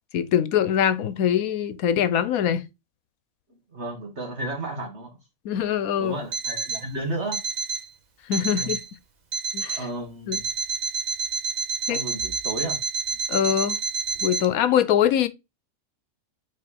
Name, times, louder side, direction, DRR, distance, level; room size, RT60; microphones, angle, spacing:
voice 1, 0.1-2.6 5.4-6.2 8.3-8.8 9.5-9.8 10.3-10.4 11.9-12.0 13.3-13.8 14.2-15.3, left 9 dB, 85° left, 1.2 m, -23 dB
voice 2, 3.7-5.1 6.0-7.4 8.5-8.7 9.7-10.4 11.9-12.8, right 2 dB, 50° right, 2.3 m, -33 dB
Alarm, 6.3-6.9 7.3-7.9 8.3-8.9 9.3-9.9 10.3-14.4, right 5 dB, 35° right, 0.9 m, -29 dB
5.0 x 4.5 x 4.1 m
omnidirectional pair, 1.5 m